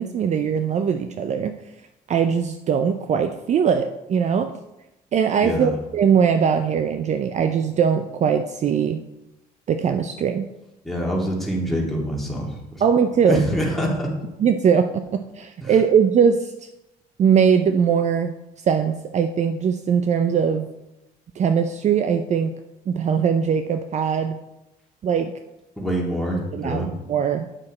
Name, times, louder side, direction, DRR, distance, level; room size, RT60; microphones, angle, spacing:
voice 1, 0.0-1.5 2.1-4.5 5.1-9.0 9.7-10.5 12.8-13.4 14.4-16.5 17.2-18.3 18.6-20.7 21.4-22.5 22.9-24.4 25.0-25.3 26.5-27.5, right 7 dB, 45° right, 8 dB, 0.5 m, -21 dB
voice 2, 5.4-5.7 10.8-12.8 13.3-14.1 15.6-15.7 25.8-26.9, equal, ahead, -3 dB, 2.3 m, -25 dB
9.0 x 6.2 x 4.3 m, 0.94 s
cardioid pair, 110°, 17 cm